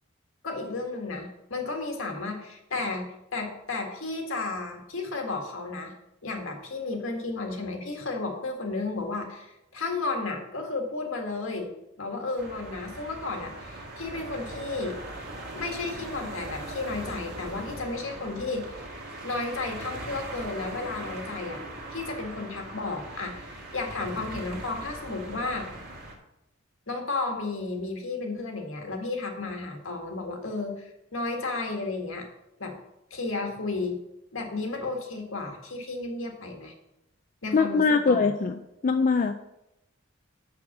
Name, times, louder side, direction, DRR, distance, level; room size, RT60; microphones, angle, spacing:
voice 1, 0.4-3.1 3.3-5.9 6.2-11.7 12.0-15.0 15.5-18.8 19.2-21.6 21.9-25.7 26.9-32.3 32.6-32.8 33.1-34.0 34.3-36.7 37.4-38.2, left 3 dB, 70° left, 3 dB, 1.7 m, -33 dB
sound 1, 12.4-26.1, right 1 dB, 50° right, 1.8 m, -40 dB
voice 2, 37.5-39.3, left 4 dB, 40° left, 6 dB, 0.4 m, -23 dB
6.4 x 5.9 x 7.2 m, 0.88 s
head